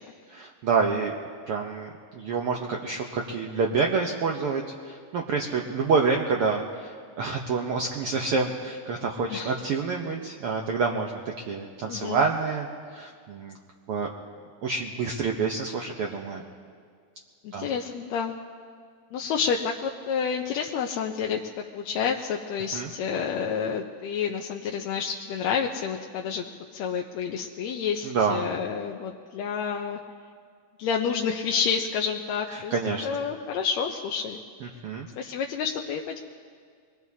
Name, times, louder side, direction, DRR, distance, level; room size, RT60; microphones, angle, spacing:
voice 1, 0.3-1.1 1.5-12.7 12.9-13.6 13.9-14.1 14.6-16.4 17.5-17.7 22.7-22.9 28.0-28.5 32.5-33.2 34.6-35.1, right 4 dB, 70° right, 1 dB, 1.4 m, -28 dB
voice 2, 11.9-12.2 17.4-18.3 19.1-21.4 21.7-26.5 26.7-30.0 30.8-32.8 33.0-34.4 35.2-36.2, left 6 dB, 75° left, 1 dB, 1.8 m, -29 dB
25.0 x 20.5 x 2.8 m, 2.1 s
omnidirectional pair, 3.4 m